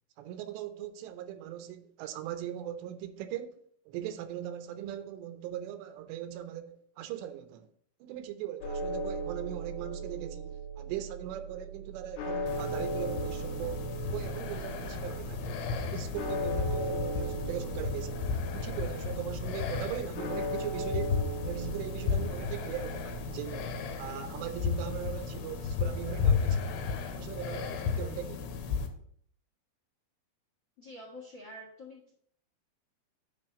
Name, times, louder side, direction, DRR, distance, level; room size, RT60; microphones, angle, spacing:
voice 1, 0.2-7.7 8.0-13.8 14.1-18.2 18.5-21.2 21.4-26.8 27.1-28.6, right 11 dB, 80° right, 2.7 m, -40 dB
sound 1, 8.6-26.5, right 2 dB, 75° left, 3.3 m, -38 dB
sound 2, 12.5-28.9, left 6 dB, 90° left, 3.3 m, -34 dB
voice 2, 30.8-32.1, left 1 dB, 55° left, 1.3 m, -47 dB
10.0 x 3.4 x 6.9 m
omnidirectional pair, 5.1 m